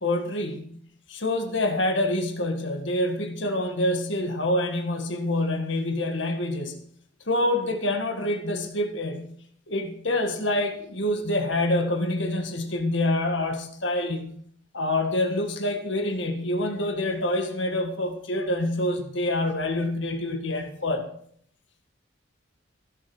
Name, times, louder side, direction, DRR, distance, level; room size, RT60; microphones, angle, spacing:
voice 1, 0.0-0.7 1.1-6.8 7.3-9.3 9.7-14.3 14.7-21.1, left 1 dB, 65° left, 4 dB, 1.8 m, -26 dB
16.0 x 7.8 x 6.2 m, 0.64 s
head